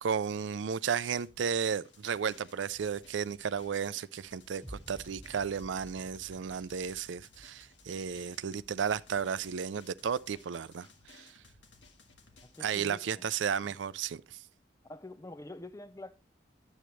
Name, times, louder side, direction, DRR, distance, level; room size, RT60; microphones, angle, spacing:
voice 1, 0.0-11.4 12.6-14.4, right 7 dB, 85° right, 0.4 m, -34 dB
Drum, 1.2-12.8, left 4 dB, 90° left, 1.6 m, -60 dB
sound 1, 4.6-10.6, right 1 dB, 10° right, 1.5 m, -54 dB
voice 2, 12.4-13.2 13.6-13.8 14.9-16.1, left 1 dB, 15° left, 0.5 m, -46 dB
10.0 x 8.0 x 3.1 m
head